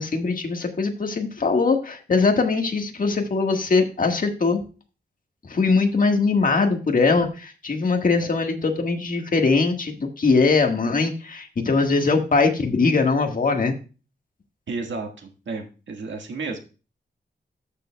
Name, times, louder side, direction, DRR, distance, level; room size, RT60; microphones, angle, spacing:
voice 1, 0.0-4.6 5.5-13.7, left 4 dB, 50° left, 3 dB, 1.6 m, -21 dB
voice 2, 14.7-16.6, right 3 dB, 85° right, 3 dB, 1.7 m, -32 dB
13.0 x 6.7 x 2.3 m, 0.33 s
wide cardioid pair, 135°, 19 cm